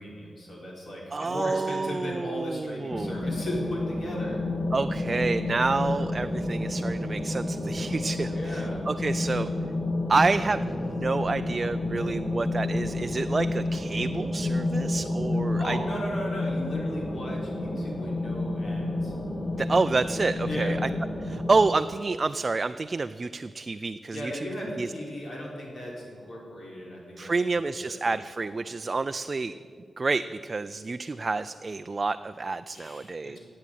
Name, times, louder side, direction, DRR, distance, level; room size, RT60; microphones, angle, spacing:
voice 1, 0.0-4.4 8.3-8.8 15.6-19.1 20.4-20.8 24.1-28.1 32.7-33.4, equal, 65° left, -3 dB, 4.5 m, -36 dB
voice 2, 1.1-3.2 4.7-9.5 10.1-15.8 19.6-20.9 21.2-24.5 24.8-24.9 27.2-29.6 30.0-33.4, right 3 dB, 35° right, 10 dB, 0.3 m, -28 dB
sound 1, 2.9-21.6, left 2 dB, 45° left, 2.6 m, -30 dB
15.0 x 8.6 x 9.1 m, 2.3 s
wide cardioid pair, 120°, 0 cm